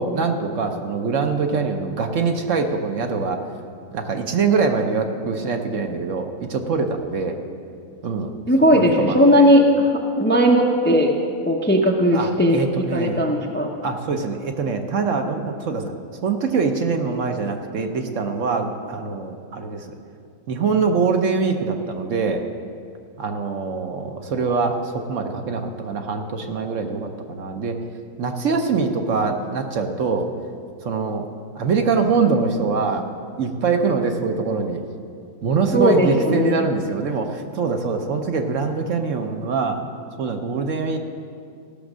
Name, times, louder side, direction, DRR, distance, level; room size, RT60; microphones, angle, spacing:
voice 1, 0.0-3.4 3.9-7.4 8.0-8.3 8.7-9.5 12.1-13.3 13.8-15.9 16.2-19.9 20.5-22.4 23.2-27.8 28.2-30.3 30.8-31.2 31.5-33.0 33.4-34.8 35.4-39.8 40.2-41.0, right 4 dB, 60° right, 5 dB, 1.1 m, -23 dB
voice 2, 8.5-9.9 10.2-11.1 11.5-13.7 35.7-36.6, equal, 10° left, 1 dB, 0.5 m, -17 dB
15.5 x 6.3 x 6.2 m, 2.4 s
omnidirectional pair, 1.6 m